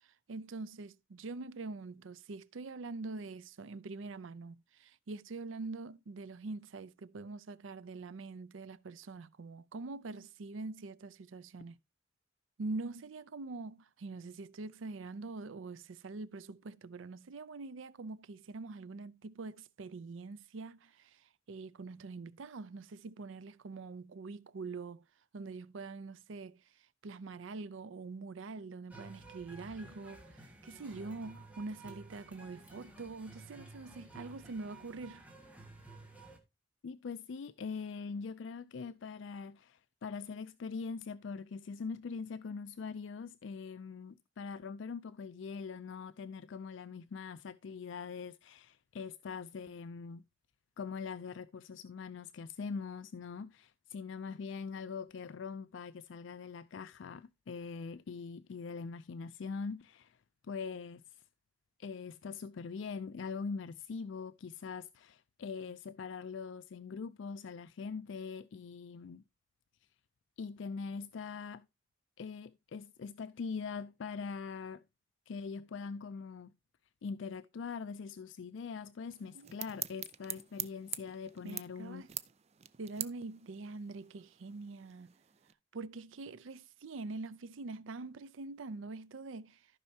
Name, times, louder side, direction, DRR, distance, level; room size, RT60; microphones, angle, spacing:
voice 1, 0.3-11.8 12.6-25.0 25.3-26.6 27.0-35.2 79.3-79.5 81.4-82.1 82.8-85.1 85.7-89.7, right 3 dB, 80° right, 0.5 m, -44 dB
sound 1, 28.9-36.4, right 2 dB, 5° right, 1.8 m, -53 dB
voice 2, 36.8-50.2 50.8-60.2 60.4-61.2 61.8-69.2 70.4-71.7 72.2-74.8 75.3-76.5 77.0-82.0, left 5 dB, 70° left, 0.4 m, -42 dB
sound 2, 79.1-85.5, right 11 dB, 35° right, 0.4 m, -45 dB
14.5 x 5.5 x 2.7 m
head